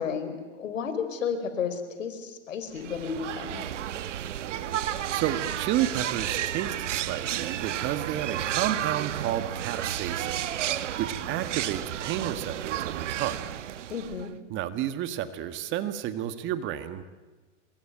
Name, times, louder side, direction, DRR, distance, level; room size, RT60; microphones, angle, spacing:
voice 1, 0.0-3.6 13.9-14.3, left 6 dB, 80° left, 9 dB, 4.6 m, -32 dB
sound 1, 2.8-14.4, right 11 dB, 70° right, 1.6 m, -32 dB
voice 2, 5.1-13.4 14.5-17.0, right 12 dB, 30° right, 11 dB, 1.7 m, -31 dB
26.5 x 22.5 x 9.1 m, 1.3 s
hypercardioid pair, 135°, 38 cm